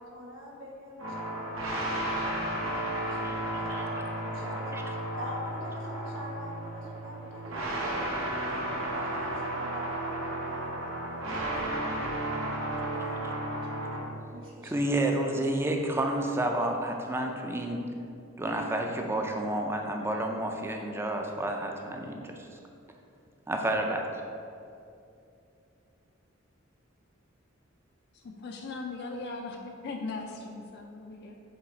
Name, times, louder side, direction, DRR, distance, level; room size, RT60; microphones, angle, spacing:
voice 1, 0.0-8.6 8.9-12.2 13.5-14.7, equal, 65° right, -2 dB, 1.3 m, -45 dB
sound 1, 1.0-14.0, right 1 dB, 85° right, 1.1 m, -33 dB
voice 2, 14.6-17.8 18.4-22.4 23.5-24.1, right 1 dB, 10° right, 2 dB, 0.4 m, -30 dB
voice 3, 28.1-31.3, left 3 dB, 55° left, 2 dB, 0.4 m, -39 dB
7.8 x 3.3 x 3.9 m, 2.6 s
head